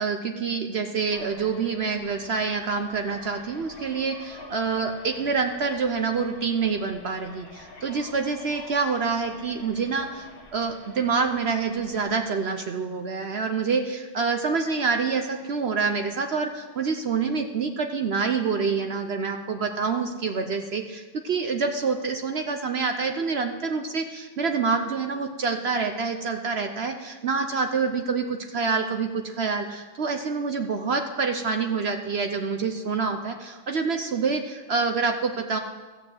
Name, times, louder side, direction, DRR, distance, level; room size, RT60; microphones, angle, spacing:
voice 1, 0.0-10.3 10.5-35.6, right 5 dB, 70° right, 5 dB, 0.6 m, -27 dB
sound 1, 1.1-12.2, left 2 dB, 30° left, 1.4 m, -47 dB
14.5 x 6.8 x 7.8 m, 1.3 s
omnidirectional pair, 2.1 m